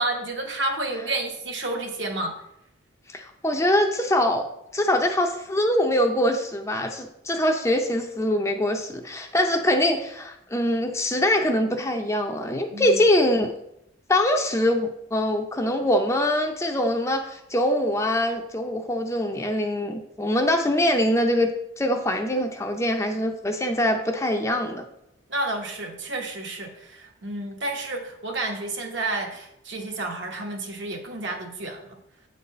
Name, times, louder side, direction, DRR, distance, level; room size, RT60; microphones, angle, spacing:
voice 1, 0.0-2.3 12.7-13.0 25.3-32.0, right 2 dB, 60° right, 2 dB, 1.3 m, -30 dB
voice 2, 3.1-4.4 4.7-13.5 14.1-21.5 21.8-24.8, left 1 dB, 15° left, 3 dB, 0.5 m, -23 dB
8.4 x 4.0 x 5.5 m, 0.80 s
head